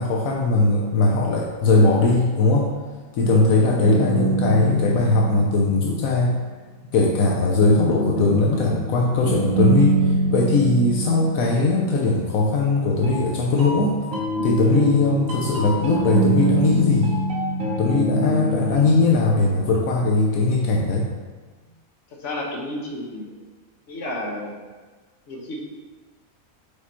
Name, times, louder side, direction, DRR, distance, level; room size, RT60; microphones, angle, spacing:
voice 1, 0.0-2.7 3.1-6.4 6.9-14.0 14.4-17.1 17.8-21.1, left 2 dB, 80° left, -1 dB, 1.1 m, -19 dB
sound 1, 3.2-6.3 7.6-12.2 13.0-20.7, right 1 dB, 70° right, 1.5 m, -26 dB
voice 2, 22.2-23.3 23.9-24.6 25.3-25.7, left 1 dB, 60° left, -1 dB, 1.3 m, -31 dB
5.1 x 4.7 x 4.3 m, 1.4 s
omnidirectional pair, 1.4 m